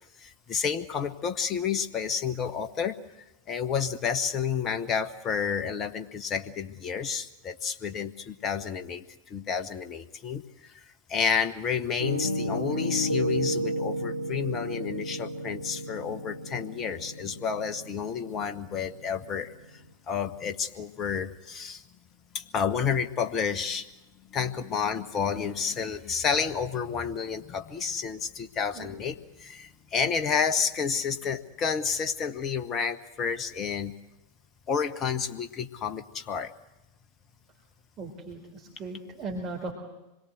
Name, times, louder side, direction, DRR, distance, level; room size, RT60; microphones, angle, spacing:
voice 1, 0.2-3.0 3.5-10.7 11.1-19.5 20.1-21.8 22.3-23.9 24.3-33.9 34.7-36.5, left 6 dB, 30° left, 10 dB, 1.4 m, -30 dB
Piano, 12.0-19.9, equal, 85° left, 1.4 m, -33 dB
voice 2, 38.0-39.7, right 3 dB, 30° right, 1 dB, 3.8 m, -37 dB
26.0 x 21.5 x 8.0 m, 0.97 s
figure-of-eight pair, 90°, 0 cm